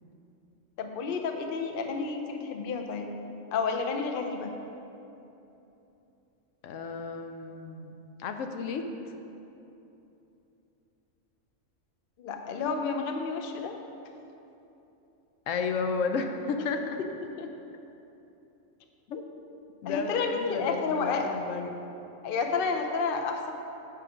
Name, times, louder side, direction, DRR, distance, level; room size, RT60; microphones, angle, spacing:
voice 1, 0.8-3.1 3.5-4.5 12.2-13.8 17.2-17.5 19.8-21.3 22.2-23.5, left 4 dB, 55° left, 4 dB, 0.7 m, -30 dB
voice 2, 6.6-7.9 8.2-8.8 15.5-17.0 19.1-19.2 19.8-21.8, left 4 dB, 85° left, 6 dB, 1.0 m, -32 dB
8.6 x 5.0 x 5.0 m, 3.0 s
omnidirectional pair, 1.3 m